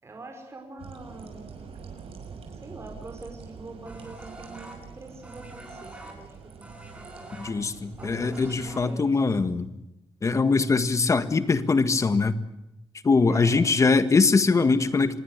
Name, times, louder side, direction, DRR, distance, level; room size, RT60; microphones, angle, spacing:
voice 1, 0.0-1.7 2.5-7.4 8.0-9.6 13.3-13.6, right 2 dB, 30° right, 3 dB, 5.4 m, -44 dB
sound 1, 0.8-8.9, right 6 dB, 75° right, 6.4 m, -45 dB
sound 2, 3.9-9.4, right 1 dB, 15° right, 6.6 m, -45 dB
voice 2, 7.4-9.7 10.2-12.4 13.0-15.2, left 4 dB, 30° left, 12 dB, 1.7 m, -22 dB
26.5 x 21.5 x 8.2 m, 0.91 s
wide cardioid pair, 155°, 10 cm